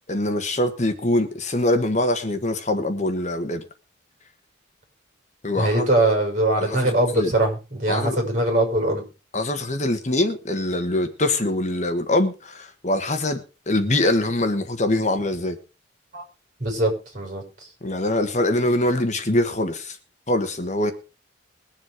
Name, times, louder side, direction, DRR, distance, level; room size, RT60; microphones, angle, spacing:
voice 1, 0.1-3.6 5.4-5.9 6.6-7.3 7.9-8.2 9.3-13.4 13.7-15.6 17.8-20.0 20.3-20.9, left 1 dB, 35° left, 1.4 m, -23 dB
voice 2, 5.5-9.0 16.1-16.2 16.6-17.7, right 1 dB, 40° right, 6.2 m, -22 dB
21.5 x 7.3 x 5.0 m
head